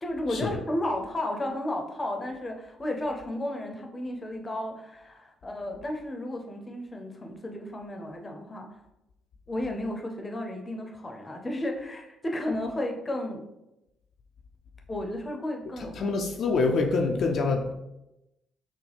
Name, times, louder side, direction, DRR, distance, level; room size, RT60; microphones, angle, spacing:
voice 1, 0.0-8.7 9.5-13.4 14.9-16.1, left 1 dB, 25° left, 3 dB, 0.7 m, -33 dB
voice 2, 16.0-17.8, left 3 dB, 65° left, 2 dB, 0.5 m, -26 dB
6.1 x 2.1 x 3.5 m, 0.91 s
cardioid pair, 90°, 0 cm